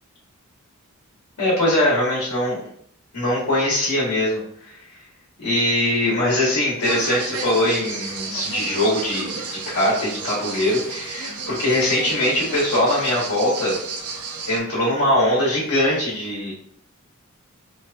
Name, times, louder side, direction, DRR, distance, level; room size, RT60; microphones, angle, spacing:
voice 1, 1.4-2.6 3.1-4.7 5.4-13.8 14.5-16.5, left 1 dB, 80° left, -6 dB, 1.0 m, -21 dB
sound 1, 6.8-14.6, right 4 dB, 90° right, 0.5 m, -32 dB
2.8 x 2.2 x 2.5 m, 0.65 s
head